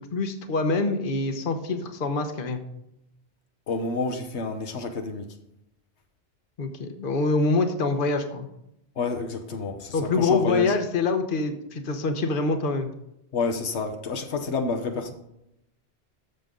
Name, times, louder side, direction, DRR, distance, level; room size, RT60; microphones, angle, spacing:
voice 1, 0.0-2.6 6.6-8.5 9.9-12.9, left 3 dB, 55° left, 7 dB, 1.1 m, -25 dB
voice 2, 3.7-5.3 9.0-10.8 13.3-15.1, left 3 dB, 85° left, 5 dB, 1.3 m, -29 dB
13.0 x 6.8 x 3.8 m, 0.84 s
omnidirectional pair, 1.1 m